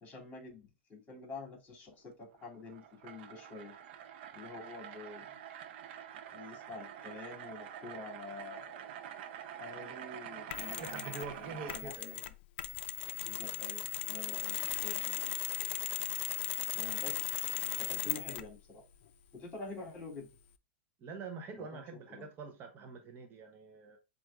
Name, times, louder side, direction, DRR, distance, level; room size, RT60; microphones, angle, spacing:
voice 1, 0.0-3.8 4.3-5.4 6.3-8.9 9.6-12.2 13.2-15.1 16.7-17.3 17.8-18.8 19.3-20.3 21.6-22.3, left 3 dB, 25° left, 2.6 m, -48 dB
sound 1, 2.3-11.8, right 10 dB, 60° right, 0.7 m, -47 dB
Mechanisms, 10.5-11.3 11.7-18.6, left 15 dB, 55° left, 0.4 m, -37 dB
voice 2, 10.8-12.2 21.0-24.0, right 4 dB, 35° right, 0.9 m, -45 dB
7.5 x 2.6 x 2.4 m
hypercardioid pair, 115°, 6 cm